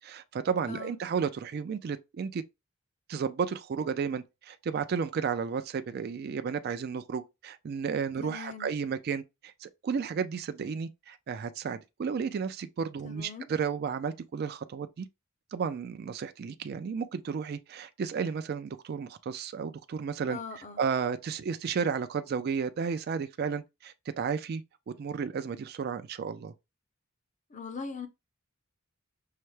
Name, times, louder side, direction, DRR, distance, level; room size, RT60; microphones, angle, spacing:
voice 1, 0.0-2.4 3.1-15.1 15.5-20.4 20.8-24.6 25.0-26.5, right 6 dB, 50° right, 0.3 m, -33 dB
voice 2, 8.2-8.7 13.0-13.5 20.3-20.8 27.5-28.1, left 5 dB, 35° left, 0.6 m, -40 dB
5.6 x 2.1 x 3.1 m
head